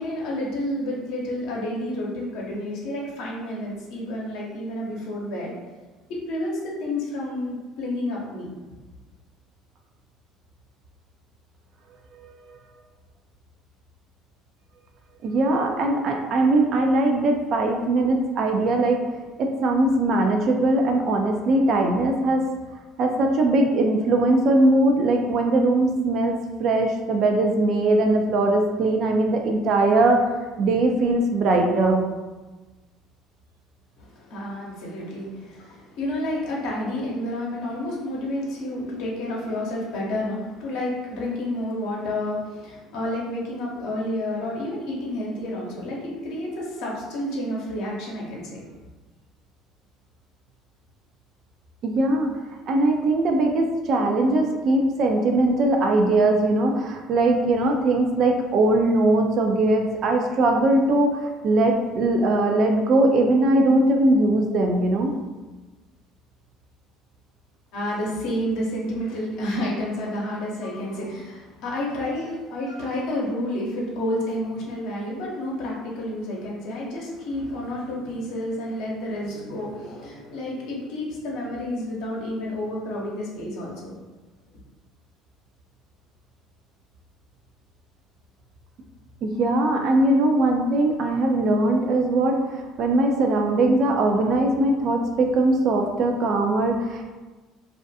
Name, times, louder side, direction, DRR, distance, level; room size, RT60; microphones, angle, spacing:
voice 1, 0.0-5.5 6.1-8.5 34.0-48.6 67.7-84.0, left 1 dB, 70° left, -3 dB, 0.7 m, -30 dB
voice 2, 12.2-12.6 15.2-19.0 19.4-22.4 23.0-30.3 30.6-32.0 51.8-52.4 52.7-65.1 89.2-97.0, right 2 dB, 55° right, 3 dB, 0.4 m, -20 dB
2.4 x 2.2 x 2.6 m, 1.2 s
hypercardioid pair, 75°, 0 cm